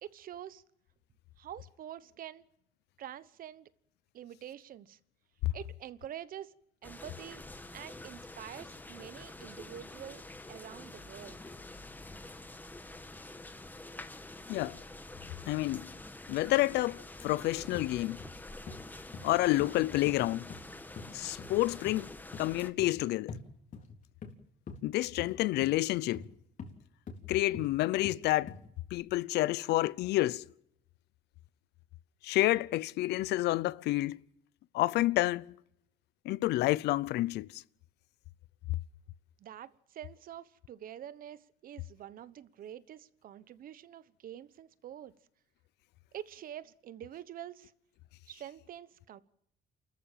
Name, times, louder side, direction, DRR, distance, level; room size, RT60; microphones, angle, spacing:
voice 1, 0.0-0.6 1.4-2.5 3.0-3.7 4.1-5.0 5.5-6.6 6.8-7.4 7.7-10.2 10.5-11.4 39.4-45.1 46.1-47.7 48.3-49.2, right 11 dB, 55° right, 1.1 m, -46 dB
sound 1, 6.8-22.7, left 2 dB, 10° left, 1.5 m, -47 dB
voice 2, 15.5-15.9 16.3-18.2 19.2-20.5 21.1-22.1 22.4-23.4 24.8-26.3 27.3-28.5 28.9-30.4 32.2-34.2 34.7-35.5 36.2-37.6, left 17 dB, 80° left, 0.7 m, -29 dB
sound 2, 17.7-17.9 18.2-18.4 18.7-18.8 19.1-19.3 19.6-19.7 20.1-20.6 21.0-21.1 21.4-21.6 21.9-22.0 22.3-22.5 22.8-23.0 23.3-23.4 23.7-24.4 24.7-24.8 25.2-25.3 25.6-25.8 26.1-26.3 26.6-26.7 27.1-27.2 27.5-27.7 28.0-28.2 28.5-28.7 29.0-29.1, left 5 dB, 50° left, 3.8 m, -44 dB
29.0 x 14.0 x 7.4 m
cardioid pair, 110°, 17 cm